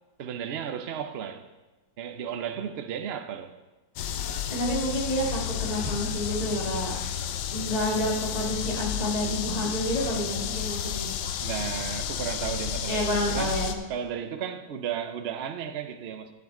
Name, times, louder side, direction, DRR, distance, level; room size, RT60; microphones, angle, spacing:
voice 1, 0.2-1.4 2.0-3.5 11.2-13.6 13.9-16.3, right 8 dB, 60° right, 0.7 m, -34 dB
sound 1, 4.0-13.7, left 9 dB, 75° left, 1.2 m, -31 dB
voice 2, 4.5-6.9 7.5-11.1 12.9-13.7, equal, 20° left, 1.9 m, -29 dB
11.0 x 8.3 x 3.7 m
omnidirectional pair, 1.9 m